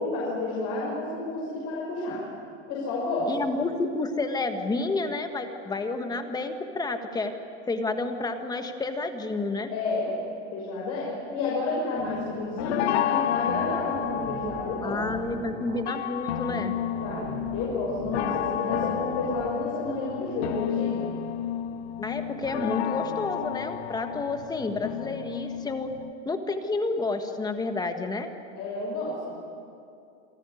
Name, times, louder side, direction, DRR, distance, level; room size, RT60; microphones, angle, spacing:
voice 1, 0.0-2.2 2.7-3.3 9.7-10.2 10.5-15.0 17.0-21.0 28.6-29.3, left 3 dB, 50° left, -5 dB, 6.2 m, -31 dB
voice 2, 3.3-7.3 7.7-9.7 14.8-16.7 22.0-25.9 26.2-28.3, left 3 dB, 10° left, 6 dB, 1.5 m, -30 dB
sound 1, 12.0-26.1, left 10 dB, 75° left, 1.1 m, -31 dB
sound 2, 13.5-15.9 16.5-19.5, right 7 dB, 40° right, 2.2 m, -40 dB
27.5 x 16.0 x 9.8 m, 2.5 s
supercardioid pair, 150°, 35 cm